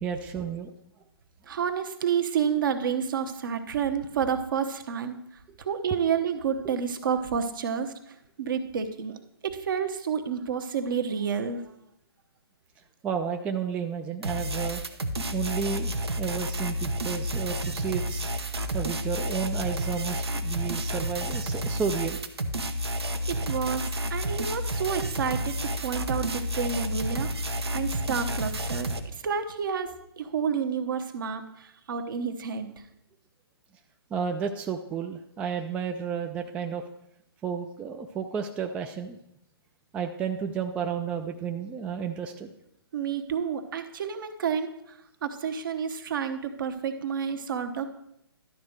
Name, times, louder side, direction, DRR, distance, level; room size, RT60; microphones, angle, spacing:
voice 1, 0.0-0.7 13.0-14.8 15.3-18.3 18.7-22.2 34.1-36.8 37.4-39.2 39.9-42.5, right 7 dB, 10° right, 4 dB, 0.3 m, -32 dB
voice 2, 1.5-5.2 5.6-9.2 9.4-11.6 23.0-27.3 27.7-29.9 30.2-32.8 42.9-47.9, right 7 dB, 55° right, 7 dB, 1.0 m, -30 dB
sound 1, 14.2-29.0, equal, 80° right, 1.0 m, -30 dB
11.5 x 4.3 x 6.4 m, 0.79 s
figure-of-eight pair, 135°, 13 cm